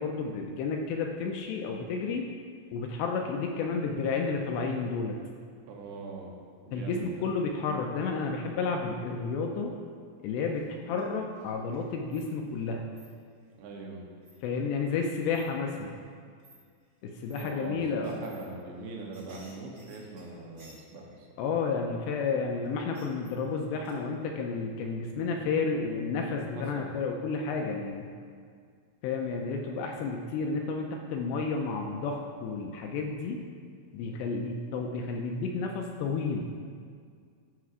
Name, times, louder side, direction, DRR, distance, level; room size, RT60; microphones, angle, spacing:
voice 1, 0.0-2.2 2.7-5.2 6.7-9.7 10.2-12.8 14.4-16.0 17.0-18.1 21.4-28.1 29.0-33.4 33.9-36.5, left 4 dB, 80° left, 2 dB, 2.5 m, -31 dB
voice 2, 5.7-6.3 6.7-7.3 13.6-14.1 17.4-21.3 26.6-26.9, right 3 dB, 75° right, 0 dB, 2.8 m, -42 dB
sound 1, 10.5-11.1 11.3-12.7 12.9-13.1 14.2-14.6 15.3-15.4 15.9-16.0 16.4-16.6 17.3-17.5 18.0-18.4 18.7-21.2 22.6-23.6 23.8-23.9, right 2 dB, 35° right, 1.4 m, -57 dB
13.5 x 6.1 x 2.5 m, 2.1 s
omnidirectional pair, 5.1 m